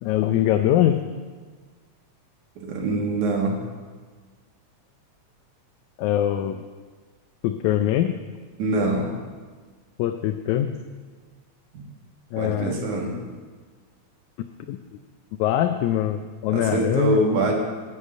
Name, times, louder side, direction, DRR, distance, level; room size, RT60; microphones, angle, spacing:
voice 1, 0.0-1.0 6.0-6.6 7.4-8.2 10.0-10.7 12.3-12.8 14.7-14.8 15.4-17.2, left 11 dB, 85° left, 7 dB, 2.0 m, -22 dB
voice 2, 2.7-3.6 8.6-9.1 12.4-13.1 16.5-17.5, right 2 dB, 85° right, 0 dB, 3.1 m, -23 dB
10.5 x 6.3 x 8.4 m, 1.5 s
omnidirectional pair, 3.4 m